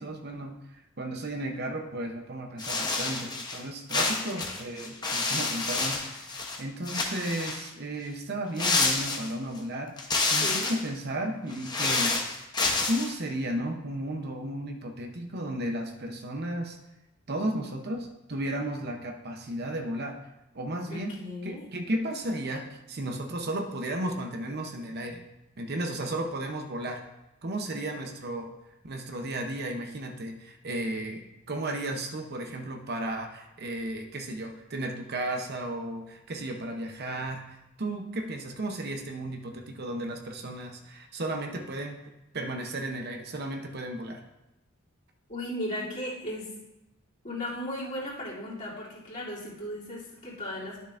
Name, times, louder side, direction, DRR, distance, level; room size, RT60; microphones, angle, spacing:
voice 1, 0.0-12.5 12.8-16.8 17.3-20.2 20.5-21.1 21.4-25.2 25.6-27.0 27.4-28.5 28.8-42.0 42.3-44.2, right 1 dB, 50° right, 3 dB, 0.7 m, -34 dB
sound 1, 2.6-3.6 3.9-6.6 6.9-7.7 8.6-9.6 10.0-10.9 11.5-13.1, left 3 dB, 20° left, 0.9 m, -28 dB
voice 2, 10.4-10.7 20.9-21.7 45.3-46.5 47.2-50.8, left 1 dB, 35° left, -8 dB, 2.9 m, -36 dB
12.0 x 6.7 x 2.5 m, 0.95 s
head